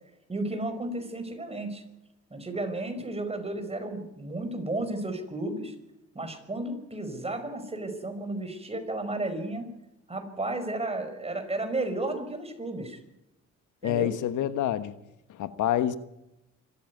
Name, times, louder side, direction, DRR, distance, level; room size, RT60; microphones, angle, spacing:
voice 1, 0.3-1.8 2.3-5.7 6.1-9.7 10.1-13.0 13.8-14.1, right 2 dB, 20° right, 5.3 m, -33 dB
voice 2, 13.8-14.9 15.3-16.0, left 11 dB, 80° left, 1.3 m, -27 dB
25.5 x 14.5 x 9.5 m
cardioid pair, 90°, 30 cm